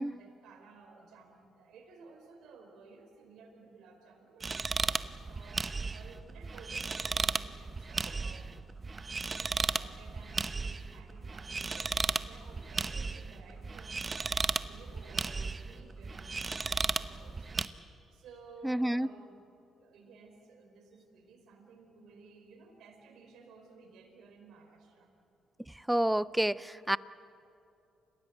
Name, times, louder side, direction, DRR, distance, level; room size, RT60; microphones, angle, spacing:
voice 1, 0.0-8.7 9.3-19.4 19.8-25.1, right 4 dB, 80° right, 3 dB, 4.5 m, -55 dB
sound 1, 4.4-17.7, right 4 dB, 30° right, 0.8 m, -35 dB
voice 2, 18.6-19.1 25.9-27.0, right 1 dB, 5° right, 18 dB, 0.5 m, -29 dB
29.0 x 16.0 x 8.1 m, 2.7 s
cardioid pair, 90°, 0 cm